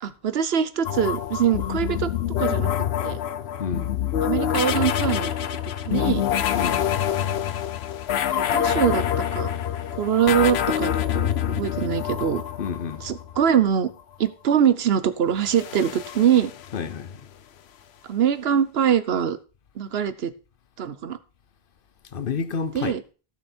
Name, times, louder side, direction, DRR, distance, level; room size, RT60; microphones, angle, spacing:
voice 1, 0.0-2.1 2.4-2.7 3.0-3.2 4.2-5.3 5.9-6.2 8.3-9.5 10.0-12.4 13.0-13.9 14.2-16.5 18.1-19.4 19.8-20.3 20.8-21.2 22.7-23.0, right 8 dB, 75° right, 1.0 m, -23 dB
sound 1, 0.9-13.4 15.4-17.1, left 10 dB, 90° left, 1.0 m, -26 dB
voice 2, 3.6-4.0 6.5-6.9 12.6-13.1 16.7-17.2 22.1-23.0, left 6 dB, 60° left, 1.0 m, -29 dB
15.0 x 6.2 x 4.3 m
omnidirectional pair, 1.0 m